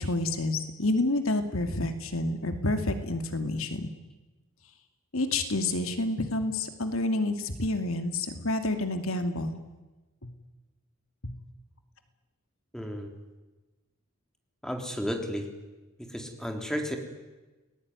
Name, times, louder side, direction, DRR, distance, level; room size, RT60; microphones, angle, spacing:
voice 1, 0.0-3.9 5.1-9.6 10.2-10.3 11.2-11.3, left 2 dB, 75° left, 7 dB, 2.5 m, -29 dB
voice 2, 12.7-13.1 14.6-15.5 16.0-17.0, equal, 5° left, 4 dB, 3.6 m, -33 dB
29.5 x 20.0 x 9.7 m, 1.2 s
head